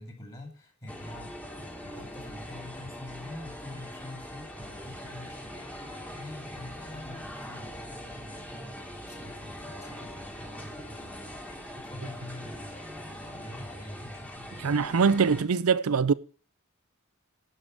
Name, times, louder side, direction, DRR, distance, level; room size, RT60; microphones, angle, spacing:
voice 1, 0.0-1.4 1.8-14.8, left 1 dB, 25° left, 2.3 m, -45 dB
sound 1, 0.9-15.4, equal, 5° left, 1.4 m, -42 dB
voice 2, 14.6-16.1, right 5 dB, 90° right, 0.5 m, -23 dB
11.5 x 4.9 x 7.4 m
head